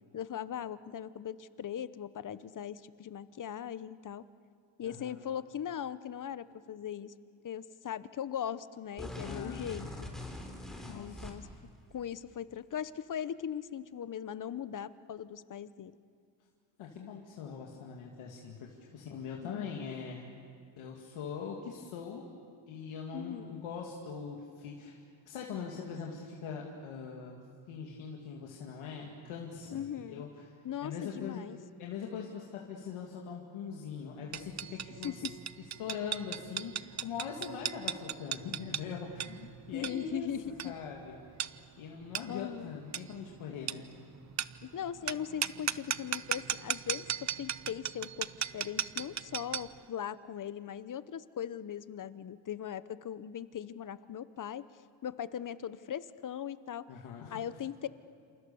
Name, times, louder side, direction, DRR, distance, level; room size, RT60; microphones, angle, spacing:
voice 1, 0.1-4.2 4.8-7.1 7.4-9.9 10.9-11.4 11.9-15.9 19.4-19.7 23.1-23.6 29.7-30.2 30.6-31.6 35.0-35.3 39.7-40.7 42.3-42.8 44.6-48.3 48.5-54.6 55.0-56.8 57.3-57.9, left 9 dB, 40° left, 15 dB, 0.9 m, -39 dB
voice 2, 4.8-5.2 9.2-9.7 10.8-11.3 16.8-20.3 20.8-22.3 22.7-25.0 25.3-27.4 27.7-30.5 30.8-31.4 31.8-35.2 35.6-40.3 40.6-41.5 41.8-43.9 56.9-57.4, left 6 dB, 90° left, -1 dB, 2.5 m, -42 dB
sound 1, 9.0-11.6, left 1 dB, ahead, 3.7 m, -43 dB
sound 2, 34.3-49.8, right 9 dB, 35° right, 0.6 m, -38 dB
28.0 x 27.5 x 7.0 m, 2.3 s
cardioid pair, 115°, 48 cm